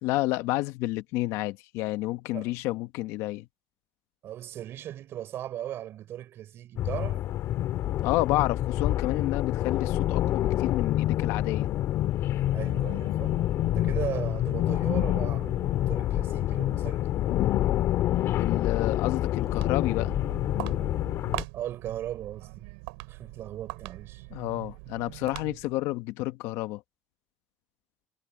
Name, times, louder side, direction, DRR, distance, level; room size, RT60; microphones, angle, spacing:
voice 1, 0.0-3.4 8.0-11.7 18.3-20.1 24.3-26.8, left 18 dB, 75° left, 1.1 m, -30 dB
voice 2, 4.2-7.2 12.5-17.2 21.5-22.7 23.1-24.3, right 12 dB, 55° right, 4.5 m, -38 dB
sound 1, 6.8-21.4, left 13 dB, 60° left, 1.9 m, -27 dB
Walk footsteps, 19.3-25.8, right 30 dB, 90° right, 4.7 m, -41 dB
supercardioid pair, 110°, 5 cm